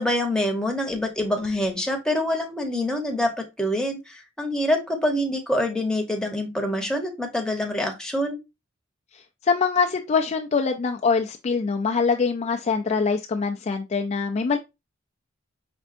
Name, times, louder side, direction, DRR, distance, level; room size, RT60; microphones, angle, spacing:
voice 1, 0.0-3.3 3.6-8.4, left 1 dB, 5° left, 0.8 m, -25 dB
voice 2, 9.4-14.6, left 5 dB, 35° left, 0.3 m, -23 dB
5.2 x 3.4 x 2.5 m
head